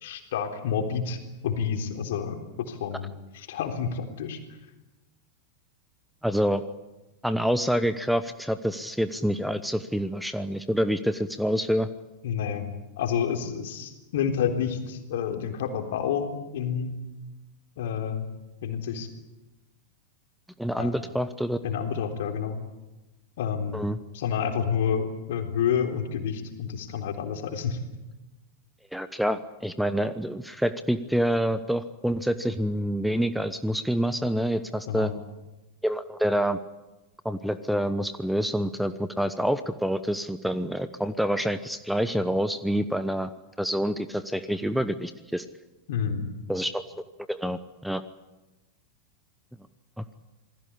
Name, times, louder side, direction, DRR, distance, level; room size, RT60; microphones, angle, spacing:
voice 1, 0.0-3.1 3.3-4.4 12.2-17.0 17.8-18.3 18.6-19.1 20.8-21.0 21.6-22.6 23.4-23.8 24.1-27.8 34.9-35.1 45.9-46.3, left 7 dB, 55° left, 5 dB, 3.6 m, -29 dB
voice 2, 6.2-6.6 7.2-11.9 20.6-21.6 23.7-24.0 28.9-35.1 35.8-36.6 37.2-43.3 43.6-45.5 46.5-48.0 50.0-50.2, equal, ahead, 13 dB, 1.0 m, -27 dB
27.5 x 20.5 x 8.7 m, 1.0 s
figure-of-eight pair, 90°, 0 cm